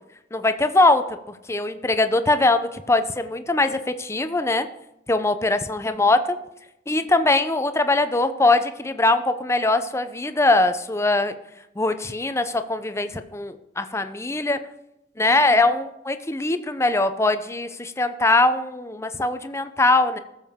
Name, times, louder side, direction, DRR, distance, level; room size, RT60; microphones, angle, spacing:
voice 1, 0.3-4.7 5.1-6.4 6.9-11.4 11.8-14.6 15.2-20.2, left 2 dB, 15° left, 10 dB, 0.6 m, -21 dB
18.0 x 7.3 x 3.7 m, 0.87 s
head